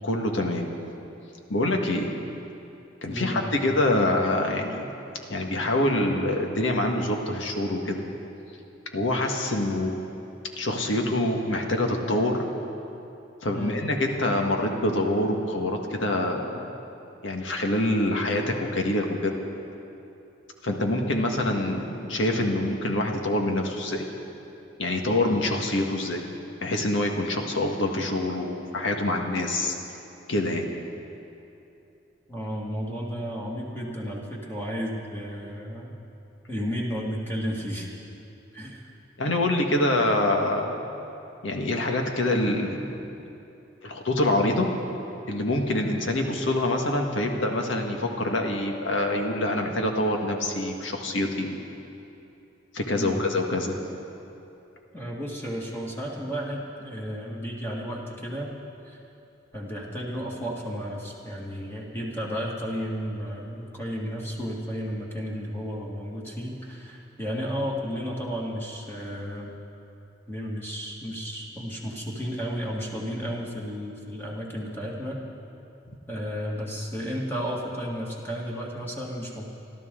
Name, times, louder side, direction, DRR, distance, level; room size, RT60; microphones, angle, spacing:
voice 1, 0.0-0.7 1.5-2.1 3.0-4.8 5.3-8.0 8.9-9.9 10.6-12.4 13.4-16.7 17.2-19.3 20.6-24.1 24.8-26.3 26.6-29.8 30.3-30.7 39.2-40.7 41.4-42.9 43.8-44.7 45.3-51.6 52.7-53.8, left 1 dB, 85° left, 2 dB, 1.6 m, -25 dB
voice 2, 3.1-3.6 13.5-13.8 32.3-35.9 36.5-37.9 38.5-38.9 52.9-53.2 54.9-58.5 58.9-59.0 59.5-69.6 70.3-75.2 76.1-79.4, equal, 10° left, -4 dB, 1.9 m, -33 dB
30.0 x 12.0 x 3.8 m, 2.8 s
head